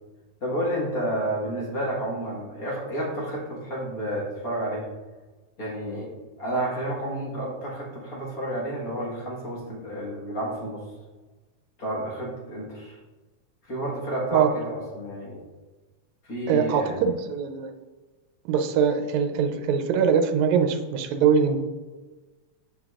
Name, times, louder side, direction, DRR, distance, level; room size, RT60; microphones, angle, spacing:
voice 1, 0.4-4.9 5.6-6.1 6.4-10.8 11.8-13.0 13.6-15.4 16.2-17.0, right 1 dB, 40° left, -4 dB, 1.3 m, -30 dB
voice 2, 16.5-17.7 18.5-21.6, right 7 dB, 80° right, 7 dB, 1.8 m, -22 dB
7.9 x 5.0 x 2.4 m, 1.2 s
omnidirectional pair, 3.4 m